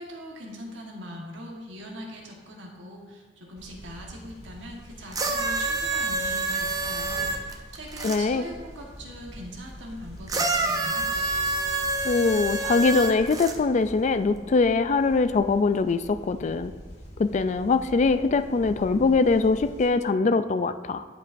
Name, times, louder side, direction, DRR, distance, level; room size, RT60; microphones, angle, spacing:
voice 1, 0.0-11.1, equal, 75° right, -1 dB, 1.4 m, -41 dB
sound 1, 3.6-19.9, equal, 65° left, 2.0 m, -44 dB
sound 2, 5.1-8.2 10.3-13.6 14.5-14.6, right 3 dB, 20° right, 0.6 m, -27 dB
voice 2, 8.0-8.4 12.0-16.7 17.2-21.0, left 4 dB, 40° left, 11 dB, 0.3 m, -22 dB
15.5 x 5.3 x 2.6 m, 1.5 s
head